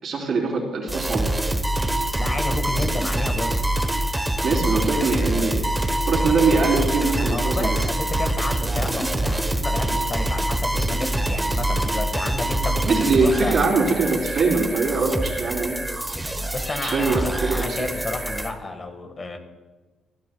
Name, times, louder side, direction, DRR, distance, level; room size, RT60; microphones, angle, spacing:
voice 1, 0.0-1.4 4.4-5.6 6.1-7.8 12.9-15.8 16.8-17.9, right 4 dB, 55° right, -2 dB, 3.6 m, -22 dB
sound 1, 0.9-18.5, right 1 dB, 10° right, 1.0 m, -25 dB
voice 2, 2.2-3.6 7.3-13.6 16.5-19.4, left 3 dB, 35° left, 5 dB, 1.5 m, -31 dB
18.5 x 12.5 x 2.3 m, 1.2 s
cardioid pair, 90°, 0 cm